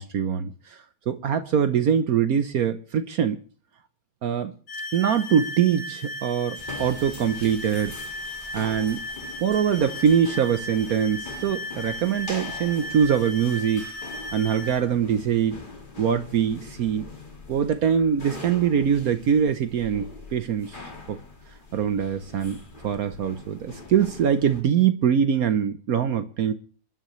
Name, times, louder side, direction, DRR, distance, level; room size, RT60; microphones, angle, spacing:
voice 1, 0.0-3.4 4.2-4.5 4.9-8.0 8.5-9.0 9.4-13.8 14.3-15.6 16.0-17.1 17.5-20.8 21.1-21.2 21.7-26.5, right 8 dB, 65° right, 1.2 m, -23 dB
sound 1, 4.7-14.8, left 1 dB, 60° left, 1.6 m, -36 dB
sound 2, 6.6-24.6, left 3 dB, 30° left, 2.1 m, -43 dB
28.0 x 11.5 x 3.2 m
omnidirectional pair, 1.7 m